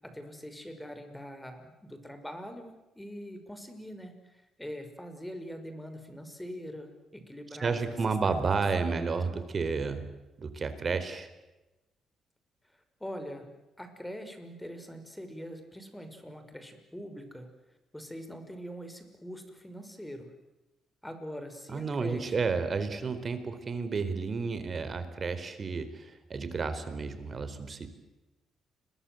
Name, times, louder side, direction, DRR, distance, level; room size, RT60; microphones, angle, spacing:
voice 1, 0.0-8.4 8.8-9.2 12.7-13.5 13.8-17.5 17.9-20.3 21.0-22.4, equal, 5° left, 7 dB, 6.0 m, -43 dB
voice 2, 7.6-10.0 10.4-11.3 21.7-27.9, right 4 dB, 40° right, 11 dB, 4.3 m, -31 dB
30.0 x 23.0 x 8.1 m, 1.1 s
cardioid pair, 90°, 0 cm